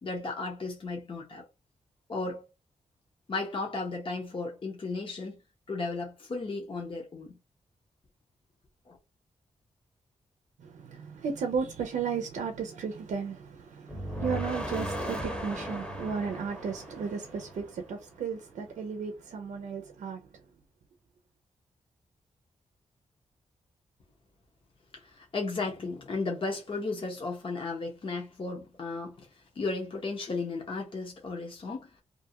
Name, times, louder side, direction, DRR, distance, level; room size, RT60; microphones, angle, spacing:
voice 1, 0.0-1.5 2.1-2.4 3.3-5.4 5.7-7.4 8.9-9.0 24.9-29.3 29.6-31.9, left 3 dB, 45° left, 0.8 m, -34 dB
voice 2, 10.6-20.2, right 6 dB, 90° right, 0.5 m, -34 dB
sound 1, 13.9-18.0, equal, 10° left, 0.8 m, -36 dB
2.6 x 2.3 x 2.7 m
cardioid pair, 75°, 12 cm